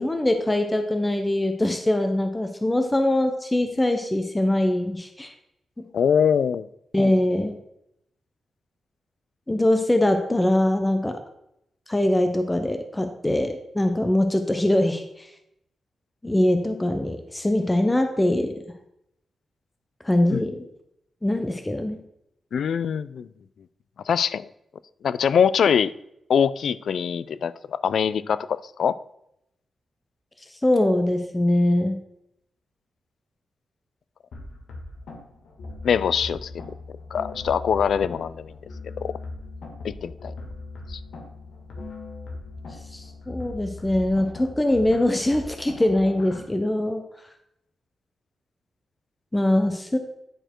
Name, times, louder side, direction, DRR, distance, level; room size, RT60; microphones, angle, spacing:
voice 1, 0.0-5.3 6.9-7.5 9.5-11.2 11.9-15.3 16.2-18.5 20.0-20.7 21.2-22.0 30.6-32.0 42.9-47.0 49.3-50.0, left 1 dB, 10° left, 6 dB, 0.6 m, -22 dB
voice 2, 5.9-6.7 20.3-20.4 22.5-23.3 24.1-24.5 25.0-25.9 26.3-29.0 35.8-36.5 37.1-38.5 38.8-39.1 39.8-40.3 40.9-41.0, left 7 dB, 70° left, 17 dB, 0.3 m, -23 dB
sound 1, 34.3-46.4, left 2 dB, 85° left, 1.5 m, -39 dB
10.0 x 4.5 x 4.4 m, 0.80 s
wide cardioid pair, 135°, 0 cm